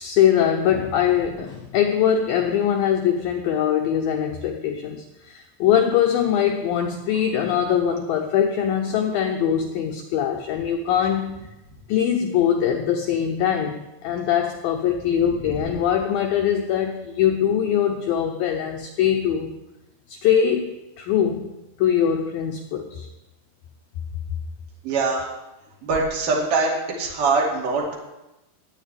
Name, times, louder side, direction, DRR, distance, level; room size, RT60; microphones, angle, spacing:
voice 1, 0.0-11.4 11.9-19.6 20.1-21.5 21.8-23.1, left 9 dB, 85° left, 4 dB, 2.0 m, -22 dB
voice 2, 15.3-15.6 24.8-25.3 25.8-27.9, right 3 dB, 55° right, -3 dB, 3.6 m, -23 dB
20.0 x 8.6 x 3.4 m, 0.99 s
omnidirectional pair, 4.9 m